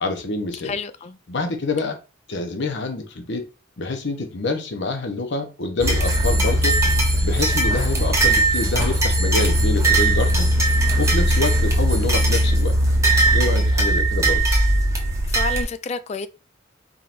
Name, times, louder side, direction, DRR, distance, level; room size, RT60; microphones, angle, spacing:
voice 1, 0.0-0.7 1.3-2.0 2.3-3.4 3.8-6.8 7.2-10.5 11.0-12.7 13.3-14.4, left 3 dB, 60° left, 0.8 m, -26 dB
voice 2, 0.6-1.2 15.3-16.3, left 4 dB, 35° left, 0.3 m, -29 dB
sound 1, 5.8-15.6, right 1 dB, 15° right, 1.0 m, -19 dB
4.3 x 3.7 x 2.5 m
head